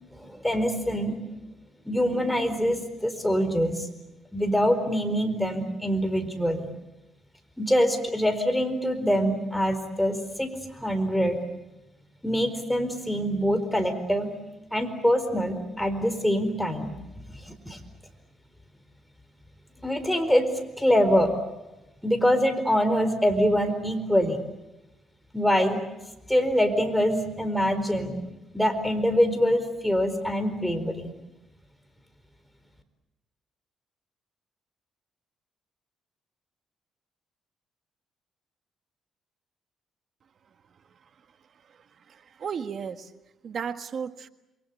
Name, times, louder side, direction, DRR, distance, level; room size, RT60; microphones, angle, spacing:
voice 1, 0.2-1.2 1.9-3.9 4.3-6.7 7.6-11.4 12.2-14.3 14.7-16.9 17.3-17.8 19.8-20.5 20.8-21.3 22.0-24.4 25.3-25.8 26.3-28.2 28.5-31.1, equal, 5° left, 8 dB, 4.3 m, -24 dB
voice 2, 42.1-43.1 43.4-44.3, right 7 dB, 55° right, 10 dB, 1.6 m, -34 dB
28.0 x 23.0 x 8.5 m, 0.98 s
cardioid pair, 90°, 0 cm